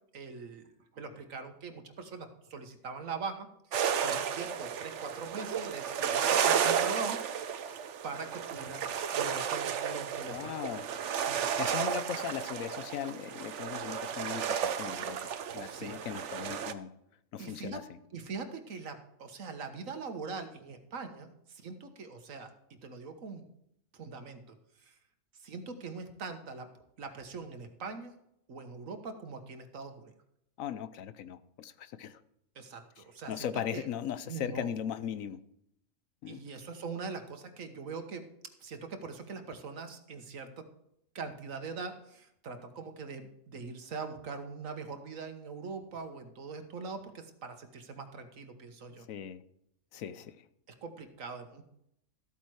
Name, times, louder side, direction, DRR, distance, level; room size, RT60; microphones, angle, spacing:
voice 1, 0.1-7.6 8.0-8.8 9.1-11.5 15.6-15.9 17.4-17.8 18.1-22.5 22.8-23.5 23.9-24.5 24.8-24.9 25.4-26.7 27.0-28.1 28.5-30.1 32.5-33.9 34.2-34.7 36.3-38.2 38.6-40.6 41.1-49.1 50.8-51.6, right 4 dB, 80° right, 7 dB, 1.7 m, -42 dB
sound 1, 3.7-16.7, right 8 dB, 65° right, 1.0 m, -33 dB
voice 2, 10.3-10.8 11.3-15.2 15.5-16.9 17.3-17.8 30.6-32.2 33.0-35.4 36.2-36.4 49.1-49.4 49.9-50.4, left 9 dB, 90° left, 13 dB, 1.1 m, -38 dB
13.5 x 8.7 x 4.7 m, 0.76 s
omnidirectional pair, 1.4 m